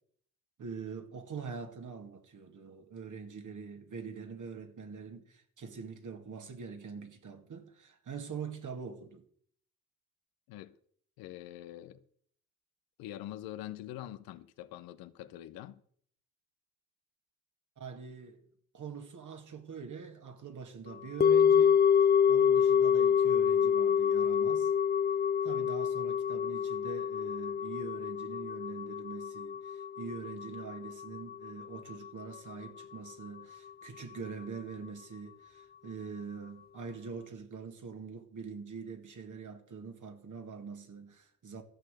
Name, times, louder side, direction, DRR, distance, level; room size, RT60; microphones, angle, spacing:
voice 1, 0.6-9.3 17.8-18.4 18.7-21.8 22.3-24.7 25.4-41.6, right 5 dB, 60° right, 2.3 m, -44 dB
voice 2, 11.2-12.0 13.0-15.8, left 13 dB, 90° left, 0.8 m, -44 dB
sound 1, 21.2-31.5 31.7-31.8, left 7 dB, 30° left, 0.6 m, -27 dB
14.0 x 6.6 x 7.7 m
supercardioid pair, 45°, 34 cm